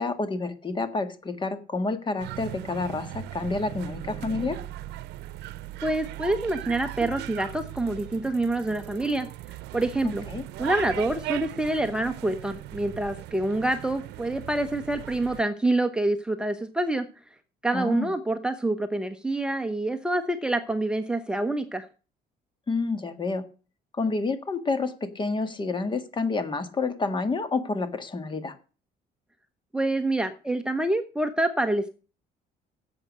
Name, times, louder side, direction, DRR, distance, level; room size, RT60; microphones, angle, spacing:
voice 1, 0.0-4.6 10.0-10.4 17.7-18.1 22.7-23.4 23.9-28.6, left 3 dB, 30° left, 11 dB, 1.6 m, -29 dB
sound 1, 2.2-15.4, right 15 dB, 80° right, 0.7 m, -38 dB
voice 2, 5.8-9.3 9.7-10.2 10.6-17.1 17.6-21.9 29.7-31.9, right 2 dB, 5° right, 7 dB, 0.9 m, -27 dB
11.0 x 7.9 x 6.2 m, 0.36 s
cardioid pair, 110°, 17 cm